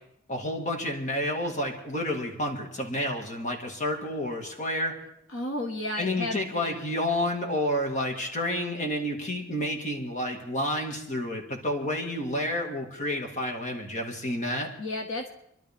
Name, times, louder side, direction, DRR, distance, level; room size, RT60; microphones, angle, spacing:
voice 1, 0.3-4.9 6.0-14.7, left 1 dB, 35° left, 2 dB, 2.1 m, -30 dB
voice 2, 5.3-6.8 14.8-15.3, left 1 dB, 75° left, 2 dB, 1.7 m, -33 dB
27.0 x 12.0 x 3.7 m, 0.77 s
head